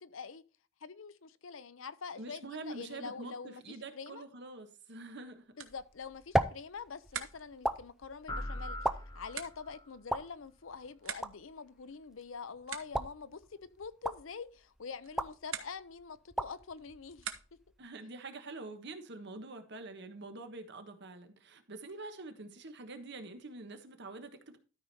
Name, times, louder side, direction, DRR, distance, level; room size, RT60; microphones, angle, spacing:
voice 1, 0.0-0.4 0.8-3.6 3.9-4.2 5.6-8.9 9.1-17.4, left 5 dB, 75° left, 0.7 m, -45 dB
voice 2, 2.1-5.5 17.8-24.6, right 2 dB, 60° right, 1.4 m, -46 dB
sound 1, 5.1-17.8, right 8 dB, 80° right, 1.1 m, -49 dB
sound 2, 5.7-17.9, right 1 dB, ahead, 0.5 m, -39 dB
sound 3, 8.3-9.9, left 1 dB, 20° left, 1.5 m, -41 dB
13.0 x 5.1 x 4.3 m
head